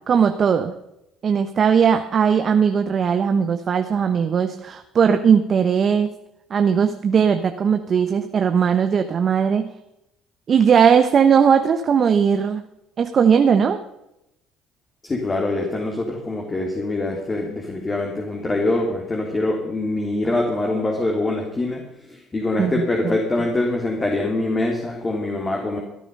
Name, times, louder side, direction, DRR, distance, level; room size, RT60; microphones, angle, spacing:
voice 1, 0.1-0.7 1.2-6.1 6.5-9.7 10.5-12.6 13.0-13.8 22.6-22.7 23.0-23.1, right 7 dB, 45° right, 7 dB, 1.1 m, -18 dB
voice 2, 15.0-25.8, left 2 dB, 25° left, 0 dB, 3.3 m, -24 dB
16.5 x 10.0 x 5.5 m, 0.86 s
supercardioid pair, 75°, 0 cm